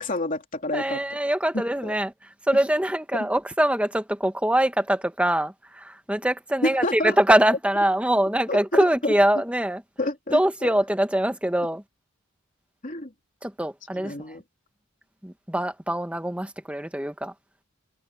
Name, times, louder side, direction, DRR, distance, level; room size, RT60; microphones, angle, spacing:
voice 1, 0.0-1.0 1.5-1.9 6.6-7.2 8.5-8.6 9.0-9.1 10.0-10.7 12.8-13.1 13.9-14.4, left 1 dB, 35° left, 3.2 m, -28 dB
voice 2, 0.7-2.1 2.5-9.8 10.3-11.8 13.4-14.3 15.2-17.3, right 1 dB, 5° right, 1.4 m, -23 dB
head